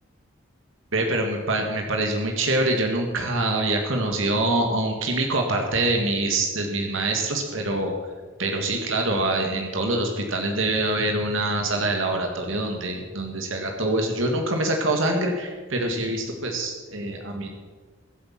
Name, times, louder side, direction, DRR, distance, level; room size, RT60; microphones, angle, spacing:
voice 1, 0.9-7.9 8.4-17.5, right 2 dB, 70° right, 2 dB, 2.0 m, -25 dB
23.0 x 8.2 x 5.9 m, 1.4 s
head